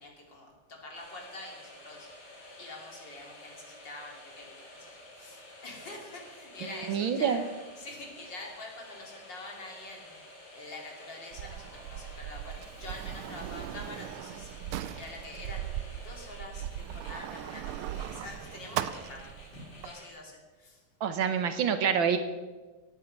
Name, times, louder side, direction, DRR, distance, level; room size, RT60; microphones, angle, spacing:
voice 1, 0.0-2.1 2.6-7.5 7.8-20.8 21.2-21.3, left 2 dB, 55° left, 0 dB, 3.5 m, -46 dB
sound 1, 0.9-20.1, left 1 dB, 70° left, 4.4 m, -51 dB
voice 2, 6.9-7.5 21.0-22.2, right 7 dB, 70° right, 8 dB, 1.7 m, -26 dB
Sliding door, 11.3-19.9, right 11 dB, 85° right, 1.6 m, -39 dB
18.0 x 9.4 x 5.4 m, 1.3 s
omnidirectional pair, 2.4 m